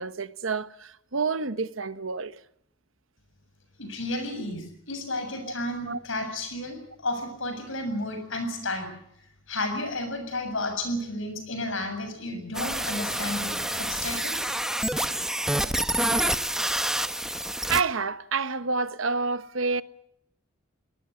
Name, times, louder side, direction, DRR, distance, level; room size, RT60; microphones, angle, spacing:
voice 1, 0.0-2.4 5.8-6.0 16.1-16.2 17.7-19.8, right 4 dB, 75° right, 1.1 m, -28 dB
voice 2, 3.8-8.9 9.5-13.5 13.8-14.4, left 1 dB, 75° left, 7.4 m, -32 dB
sound 1, 12.5-17.8, right 1 dB, 5° right, 0.9 m, -28 dB
23.0 x 19.0 x 9.5 m
head